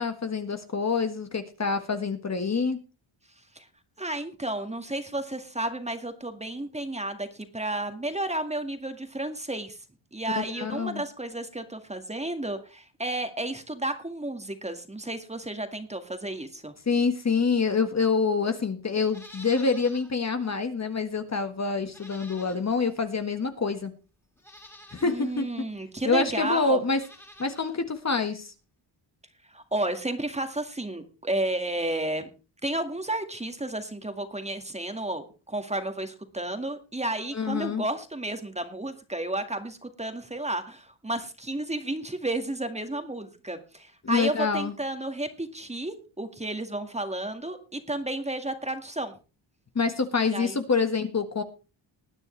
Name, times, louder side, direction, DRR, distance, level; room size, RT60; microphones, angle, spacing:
voice 1, 0.0-2.8 10.3-11.0 16.8-23.9 24.9-25.4 26.0-27.0 27.4-28.5 37.3-37.8 44.0-44.7 49.7-51.4, left 4 dB, 35° left, 7 dB, 1.6 m, -26 dB
voice 2, 4.0-9.8 10.1-16.7 25.0-26.8 29.5-32.3 32.6-49.1 50.3-50.6, right 1 dB, 15° right, 7 dB, 1.9 m, -32 dB
Livestock farm animals working animals, 19.0-20.1 20.5-20.6 21.8-22.9 23.7-23.8 24.4-25.2 26.8-27.7 28.0-28.1, left 1 dB, 5° left, 3.1 m, -49 dB
20.0 x 9.6 x 3.3 m, 0.32 s
cardioid pair, 100°, 48 cm